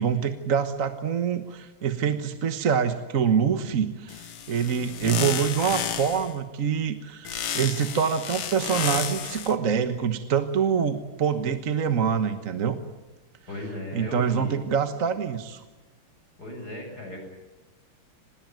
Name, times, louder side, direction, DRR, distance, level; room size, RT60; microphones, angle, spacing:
voice 1, 0.0-12.7 13.9-15.6, right 7 dB, 45° right, 9 dB, 1.4 m, -25 dB
sound 1, 4.1-6.3 7.3-9.5, left 8 dB, 90° left, 2.3 m, -31 dB
voice 2, 13.5-14.6 16.4-17.2, left 1 dB, 45° left, 2 dB, 7.8 m, -36 dB
25.5 x 20.0 x 9.2 m, 1.1 s
omnidirectional pair, 2.4 m